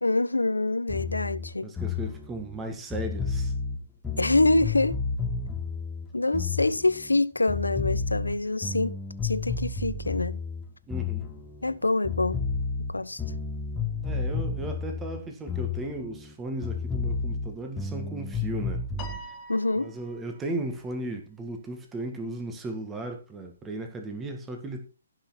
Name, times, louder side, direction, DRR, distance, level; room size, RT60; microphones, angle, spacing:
voice 1, 0.0-1.7 4.2-5.0 6.1-8.9 9.2-10.4 11.6-12.4 12.9-13.2 19.5-19.9, left 2 dB, 85° left, 0.9 m, -25 dB
sound 1, 0.9-7.2 7.5-11.8 12.0-16.3 16.6-19.2, left 5 dB, 10° left, 1.5 m, -32 dB
voice 2, 1.6-3.5 10.9-11.3 14.0-18.8 19.8-24.9, right 2 dB, 10° right, 1.9 m, -36 dB
Piano, 19.0-20.5, left 1 dB, 25° left, 2.4 m, -43 dB
16.5 x 6.1 x 4.4 m
figure-of-eight pair, 135°, 0 cm